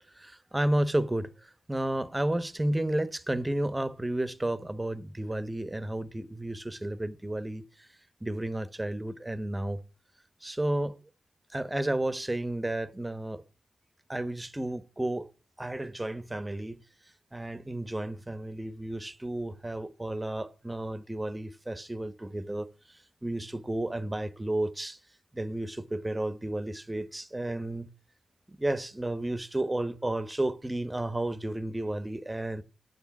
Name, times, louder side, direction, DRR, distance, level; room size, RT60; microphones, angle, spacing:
voice 1, 0.2-7.9 8.2-9.8 10.4-11.0 11.5-13.4 14.1-15.3 15.6-16.8 17.3-25.0 25.3-27.9 28.5-32.6, right 1 dB, 15° right, 1.2 m, -32 dB
10.0 x 7.3 x 7.1 m
cardioid pair, 55°, 0 cm